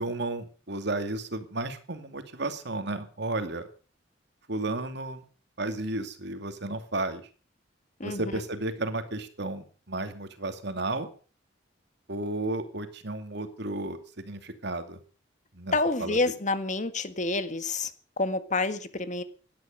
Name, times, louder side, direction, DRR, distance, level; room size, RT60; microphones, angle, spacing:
voice 1, 0.0-3.7 4.5-5.2 5.6-7.2 8.0-11.1 12.1-15.0 15.5-15.8 16.0-16.2, right 2 dB, 65° right, 8 dB, 2.5 m, -33 dB
voice 2, 8.0-8.4 15.7-17.9 18.2-19.2, left 3 dB, 40° left, 11 dB, 1.8 m, -28 dB
18.0 x 12.0 x 6.7 m, 0.40 s
head